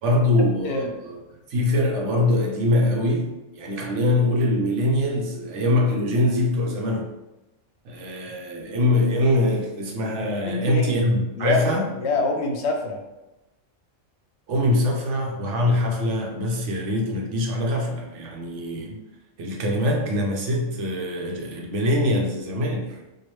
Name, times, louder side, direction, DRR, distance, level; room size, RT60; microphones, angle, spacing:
voice 1, 0.0-1.2 1.5-3.3 3.6-7.1 7.8-11.9 14.5-18.9 19.4-23.0, left 1 dB, 70° right, 1 dB, 1.0 m, -23 dB
voice 2, 10.5-11.1 11.4-13.0 18.9-19.0, left 3 dB, 65° left, 2 dB, 0.8 m, -26 dB
4.6 x 2.4 x 3.1 m, 0.99 s
omnidirectional pair, 1.3 m